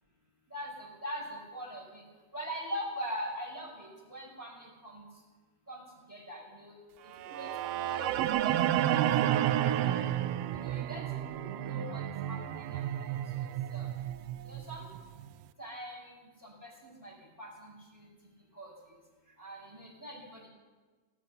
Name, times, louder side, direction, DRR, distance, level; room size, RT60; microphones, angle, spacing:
voice 1, 0.5-1.2 1.5-2.0 2.3-5.0 5.7-5.8 6.1-6.7 7.3-7.5 7.7-8.1 8.4-10.1 10.5-12.0 12.3-13.2 13.7-13.9 14.5-14.8 15.6-16.1 16.4-16.7 17.0-17.1 17.4-18.0 18.6-18.7 19.4-20.5, equal, 5° right, -1 dB, 4.7 m, -42 dB
sound 1, 7.2-15.2, right 12 dB, 90° right, 1.3 m, -31 dB
17.5 x 12.5 x 6.6 m, 1.4 s
omnidirectional pair, 3.4 m